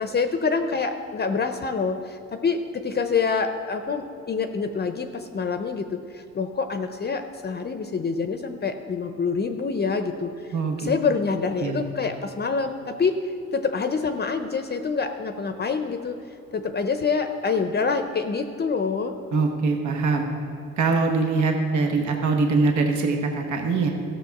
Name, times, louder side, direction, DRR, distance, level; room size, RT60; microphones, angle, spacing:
voice 1, 0.0-10.5 10.8-16.2 16.5-19.1, left 5 dB, 35° left, 8 dB, 0.6 m, -26 dB
voice 2, 10.5-10.9 11.6-11.8 19.3-20.3 20.8-23.9, right 4 dB, 70° right, 3 dB, 1.3 m, -23 dB
13.5 x 6.8 x 5.8 m, 2.7 s
cardioid pair, 90°, 30 cm